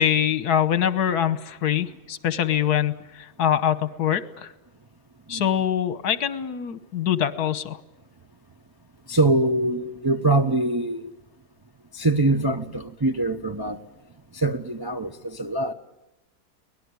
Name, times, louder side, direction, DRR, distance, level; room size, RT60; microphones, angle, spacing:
voice 1, 0.0-4.5 5.3-7.8, left 9 dB, 75° left, 1.6 m, -24 dB
voice 2, 9.1-11.1 11.9-13.8 14.3-15.7, right 2 dB, 25° right, 0.5 m, -23 dB
24.5 x 19.0 x 9.5 m
omnidirectional pair, 1.7 m